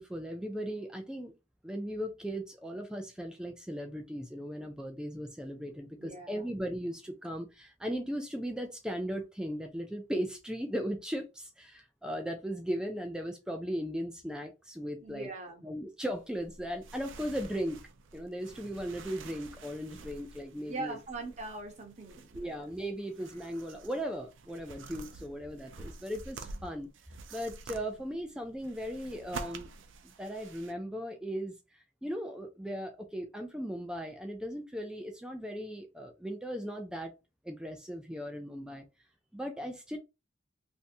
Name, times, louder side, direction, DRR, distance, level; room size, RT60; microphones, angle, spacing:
voice 1, 0.0-1.3 1.6-15.3 15.6-17.8 18.1-21.0 22.3-26.9 27.3-29.7 30.0-31.5 32.0-37.1 37.4-38.8 39.3-40.0, equal, 5° right, 0.3 m, -37 dB
voice 2, 6.0-6.5 15.0-15.6 20.7-22.5, right 3 dB, 35° right, 0.9 m, -41 dB
sound 1, 16.1-30.7, right 4 dB, 80° right, 0.5 m, -49 dB
3.3 x 2.7 x 2.6 m
head